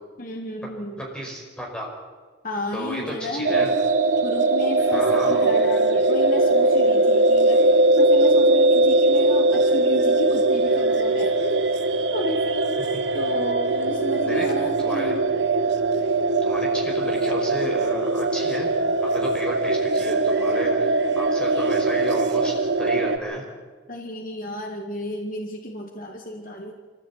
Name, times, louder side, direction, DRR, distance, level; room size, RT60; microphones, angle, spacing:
voice 1, 0.2-1.0 2.4-3.7 4.2-11.5 12.1-12.7 13.1-15.2 23.9-26.7, left 1 dB, 45° left, 1 dB, 2.0 m, -32 dB
voice 2, 1.0-1.9 2.7-3.7 4.9-5.4 14.2-14.5 14.8-15.2 16.4-18.8 19.0-23.4, equal, 5° left, -1 dB, 5.3 m, -32 dB
sound 1, 3.4-23.2, right 2 dB, 80° right, 1.2 m, -20 dB
24.0 x 15.5 x 8.9 m, 1.4 s
head